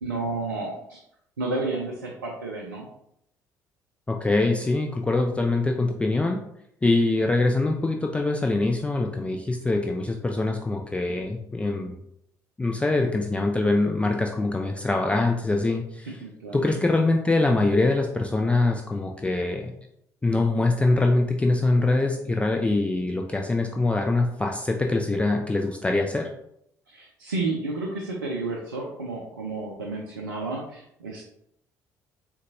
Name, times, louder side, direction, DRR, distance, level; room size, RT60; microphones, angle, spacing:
voice 1, 0.0-1.0 1.4-2.9 16.2-16.7 26.9-31.2, right 3 dB, 85° right, -1 dB, 0.4 m, -31 dB
voice 2, 4.1-6.4 6.8-12.0 12.6-16.1 16.5-19.7 20.2-26.3, left 2 dB, 10° left, 2 dB, 0.3 m, -23 dB
3.8 x 2.2 x 2.6 m, 0.75 s
figure-of-eight pair, 50°, 10 cm